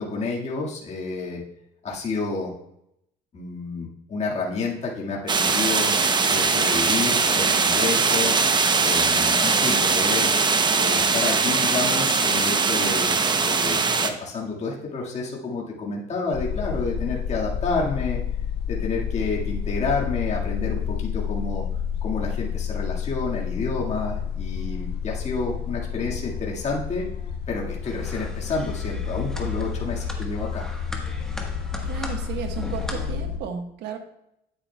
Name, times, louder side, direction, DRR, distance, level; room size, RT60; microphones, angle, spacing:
voice 1, 0.0-1.4 1.8-2.5 3.3-5.9 6.3-8.4 8.8-10.3 10.7-18.2 18.7-21.6 22.0-27.1 27.5-30.6, left 3 dB, 40° left, -3 dB, 1.9 m, -29 dB
sound 1, 5.3-14.1, right 4 dB, 25° right, 0.7 m, -21 dB
sound 2, 16.3-33.4, left 8 dB, 90° left, 1.5 m, -30 dB
sound 3, 27.8-33.1, left 1 dB, 5° left, 1.3 m, -40 dB
voice 2, 31.8-34.0, right 7 dB, 85° right, 5 dB, 1.3 m, -34 dB
9.0 x 8.8 x 2.3 m, 0.79 s
cardioid pair, 110°, 17 cm